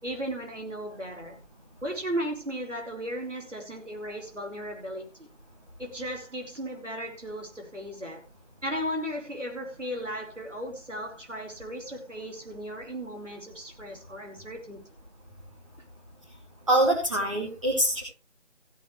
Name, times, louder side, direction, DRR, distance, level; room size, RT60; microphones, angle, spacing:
voice 1, 0.0-1.4 1.8-5.3 5.8-8.2 8.6-14.8, equal, 80° right, 5.0 m, -36 dB
voice 2, 16.7-18.0, right 1 dB, 25° right, 2.5 m, -24 dB
15.5 x 10.5 x 3.3 m
figure-of-eight pair, 170°, 36 cm